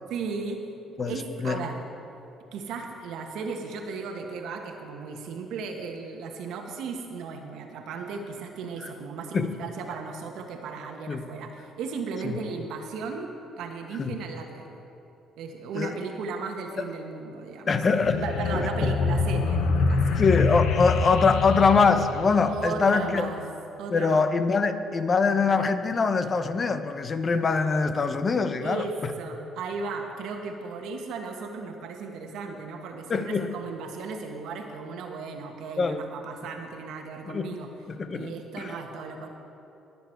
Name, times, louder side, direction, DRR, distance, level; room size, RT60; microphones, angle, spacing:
voice 1, 0.1-0.6 0.9-1.9 2.5-14.8 15.4-17.8 18.2-20.2 22.4-23.5 23.8-24.2 28.6-37.7 38.1-39.3, right 4 dB, 75° right, 3 dB, 1.3 m, -36 dB
voice 2, 17.7-18.2 18.5-18.9 20.2-23.3 23.9-29.1 33.1-33.5 35.8-36.0 37.3-37.5 37.9-38.7, left 4 dB, 40° left, 10 dB, 0.9 m, -23 dB
sound 1, 18.0-23.0, left 4 dB, 75° left, 0.8 m, -26 dB
20.5 x 7.1 x 4.6 m, 3.0 s
supercardioid pair, 65°, 0 cm